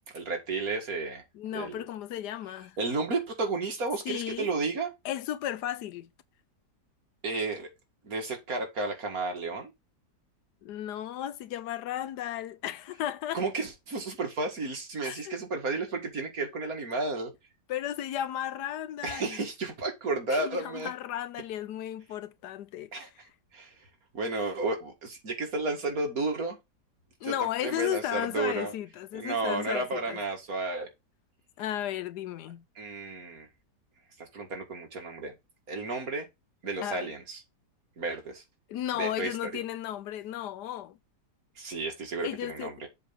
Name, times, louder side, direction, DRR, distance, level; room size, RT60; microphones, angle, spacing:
voice 1, 0.1-1.2 1.5-1.8 2.8-4.9 7.2-7.7 8.0-9.7 13.3-17.3 19.0-20.9 22.9-23.1 23.5-23.7 24.1-26.6 27.2-27.3 27.6-28.7 29.1-30.9 32.8-33.5 34.2-35.3 35.7-36.3 36.6-37.4 38.0-38.4 38.9-39.3 41.6-42.9, right 3 dB, 60° right, 2.4 m, -32 dB
voice 2, 1.3-2.8 4.1-4.5 5.0-6.1 10.6-13.4 15.0-15.3 17.7-19.4 20.3-22.9 27.2-30.2 31.6-32.6 36.8-37.1 38.7-41.0 42.2-42.7, left 12 dB, 90° left, 1.3 m, -34 dB
7.3 x 3.5 x 6.0 m
omnidirectional pair, 1.7 m